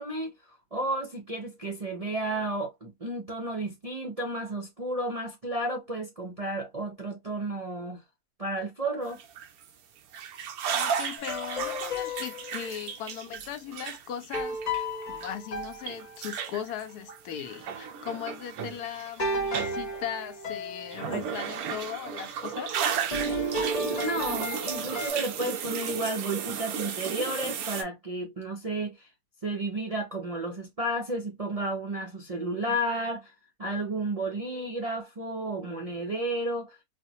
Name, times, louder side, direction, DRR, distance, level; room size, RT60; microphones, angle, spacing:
voice 1, 0.0-8.0 8.4-9.2 23.8-29.1 29.4-33.3 33.6-36.8, right 1 dB, 45° right, 0.4 m, -32 dB
sound 1, 9.1-9.7 10.1-15.3 15.6-19.2 19.5-20.0 20.9-27.8, right 7 dB, 70° right, 1.1 m, -34 dB
voice 2, 10.7-22.7, left 9 dB, 80° left, 1.1 m, -38 dB
sound 2, 11.2-12.7 14.3-16.5 19.2-21.2 23.1-25.1, equal, 35° left, 0.7 m, -33 dB
4.0 x 2.0 x 2.7 m
omnidirectional pair, 1.7 m